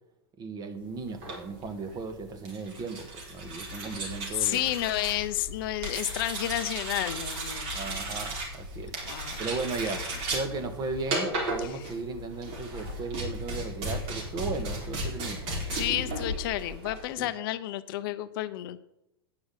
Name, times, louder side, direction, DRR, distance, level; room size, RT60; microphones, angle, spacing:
voice 1, 0.4-4.6 7.7-15.5 17.2-17.3, right 4 dB, 30° right, 8 dB, 1.7 m, -36 dB
sound 1, 1.1-17.1, right 1 dB, 50° right, 4.1 m, -35 dB
voice 2, 4.4-8.2 9.1-9.4 11.6-11.9 15.7-18.8, left 14 dB, 60° left, 14 dB, 0.7 m, -31 dB
9.5 x 6.2 x 8.3 m, 0.85 s
hypercardioid pair, 105°, 13 cm